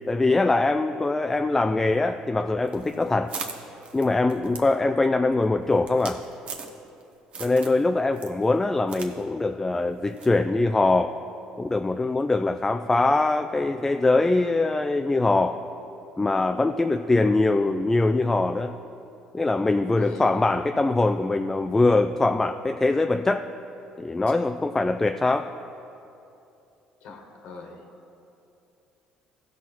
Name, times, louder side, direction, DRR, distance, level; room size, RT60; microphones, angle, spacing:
voice 1, 0.1-3.3 3.9-6.2 7.4-11.2 11.6-15.6 16.2-18.7 19.3-23.5 24.0-25.5, left 2 dB, 15° left, 8 dB, 0.3 m, -23 dB
sound 1, 2.7-7.0 7.3-7.8 8.1-9.1 9.4-9.5 10.2-10.4, right 4 dB, 50° right, 1.1 m, -39 dB
voice 2, 20.0-20.5 27.0-27.9, left 3 dB, 70° left, 3 dB, 1.3 m, -41 dB
15.5 x 6.0 x 4.2 m, 2.8 s
supercardioid pair, 85°, 2 cm